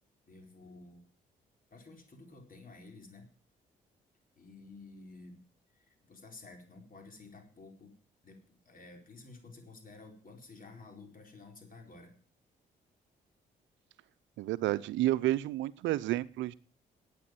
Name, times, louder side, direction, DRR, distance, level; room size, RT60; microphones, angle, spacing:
voice 1, 0.3-1.1 1.7-3.3 4.4-5.4 5.7-7.9 8.2-12.2, left 3 dB, 45° left, 4 dB, 4.4 m, -52 dB
voice 2, 14.4-16.5, right 15 dB, 80° right, 16 dB, 0.6 m, -30 dB
11.0 x 8.6 x 9.0 m, 0.42 s
supercardioid pair, 55°, 19 cm